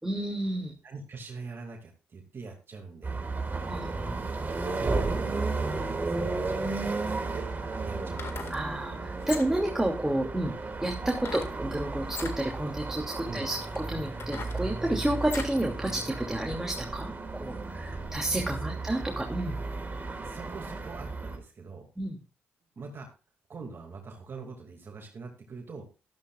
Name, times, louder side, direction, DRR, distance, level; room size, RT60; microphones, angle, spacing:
voice 1, 0.0-0.7 3.7-3.9 8.5-10.5 10.8-19.6 22.0-22.2, right 1 dB, 10° right, 0 dB, 2.7 m, -30 dB
voice 2, 0.8-3.2 4.7-7.5 7.8-8.6 13.2-13.5 18.7-18.8 20.2-21.9 22.8-23.1 23.5-25.9, right 4 dB, 50° right, 2 dB, 2.4 m, -43 dB
sound 1, 3.0-21.4, right 3 dB, 35° right, 4.6 m, -34 dB
sound 2, 8.1-8.6 9.2-9.7 11.2-11.6 12.0-12.4 13.1-13.2 13.7-15.6 16.1-16.2, left 5 dB, 55° left, 2.0 m, -40 dB
13.0 x 12.5 x 2.5 m, 0.33 s
supercardioid pair, 50°, 5 cm